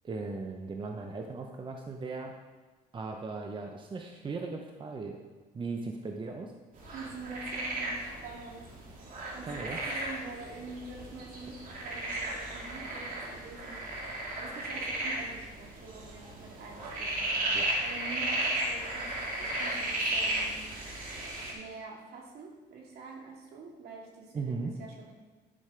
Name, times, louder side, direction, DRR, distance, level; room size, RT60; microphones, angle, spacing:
voice 1, 0.0-2.3 2.9-5.2 5.5-6.5 9.5-9.8 17.5-17.8 24.3-24.7, right 4 dB, 30° right, 3 dB, 0.9 m, -37 dB
sound 1, 6.8-21.5, right 1 dB, 55° right, 2.7 m, -35 dB
voice 2, 6.9-8.7 9.3-17.3 17.8-20.6 21.5-25.1, right 3 dB, 70° right, 0 dB, 2.4 m, -46 dB
11.0 x 6.3 x 5.0 m, 1.3 s
cardioid pair, 110°, 17 cm